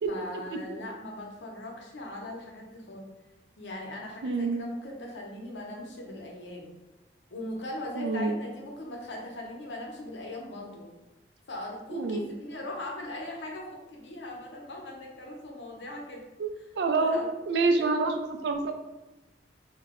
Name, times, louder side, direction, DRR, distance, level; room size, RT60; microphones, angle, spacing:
voice 1, 0.1-3.0 3.6-6.7 7.3-10.9 11.5-16.2 17.0-17.3 17.8-17.9, left 1 dB, 85° left, 0 dB, 0.6 m, -40 dB
voice 2, 4.2-4.6 8.0-8.4 11.9-12.3 16.4-18.7, right 3 dB, 70° right, 5 dB, 0.3 m, -27 dB
2.2 x 2.0 x 3.5 m, 1.0 s
head